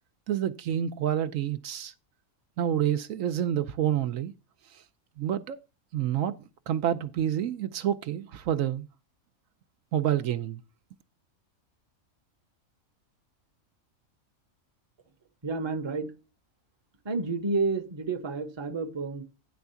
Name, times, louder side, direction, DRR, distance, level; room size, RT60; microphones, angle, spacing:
voice 1, 0.3-1.9 2.6-4.3 4.7-4.8 5.2-5.6 5.9-6.4 6.7-8.9 9.9-10.6, right 10 dB, 75° right, 1.0 m, -28 dB
voice 2, 15.4-16.1 17.0-19.3, right 3 dB, 25° right, 0.8 m, -30 dB
10.5 x 3.5 x 6.8 m
omnidirectional pair, 1.5 m